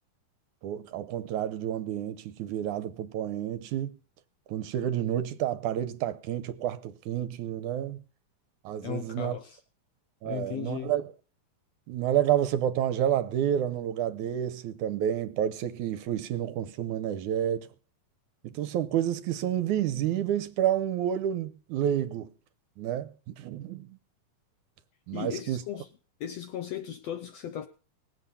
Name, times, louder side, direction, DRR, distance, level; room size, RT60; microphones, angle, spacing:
voice 1, 0.6-4.0 4.5-8.0 8.6-9.4 10.2-11.1 11.9-17.7 18.4-22.3 22.8-24.0 25.1-25.6, right 10 dB, 75° right, 2.2 m, -29 dB
voice 2, 8.8-9.6 10.2-10.9 25.1-25.9 26.2-27.7, left 10 dB, 70° left, 1.6 m, -36 dB
19.5 x 8.1 x 7.0 m
omnidirectional pair, 3.9 m